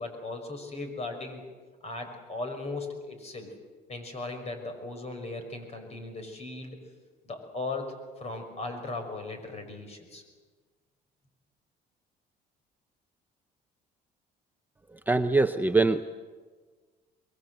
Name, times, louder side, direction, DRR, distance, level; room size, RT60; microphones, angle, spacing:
voice 1, 0.0-1.4 1.8-3.5 3.9-6.8 7.2-10.2, left 2 dB, 40° left, 6 dB, 5.8 m, -37 dB
voice 2, 15.1-16.0, right 3 dB, 10° right, 7 dB, 0.7 m, -23 dB
23.5 x 22.0 x 7.9 m, 1.4 s
cardioid pair, 110°, 17 cm